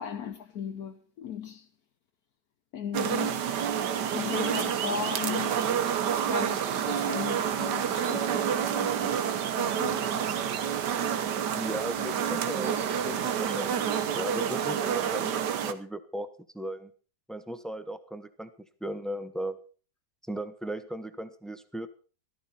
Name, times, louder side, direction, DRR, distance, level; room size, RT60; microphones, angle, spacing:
voice 1, 0.0-1.7 2.7-3.4 4.1-5.6 6.3-10.1, left 8 dB, 65° left, 1.3 m, -37 dB
sound 1, 2.9-15.7, right 8 dB, 90° right, 1.6 m, -28 dB
voice 2, 11.5-12.8 13.0-16.3 16.5-16.9 17.3-18.5 18.8-19.6 20.3-21.9, right 1 dB, ahead, 0.7 m, -37 dB
14.0 x 13.5 x 4.3 m
omnidirectional pair, 1.8 m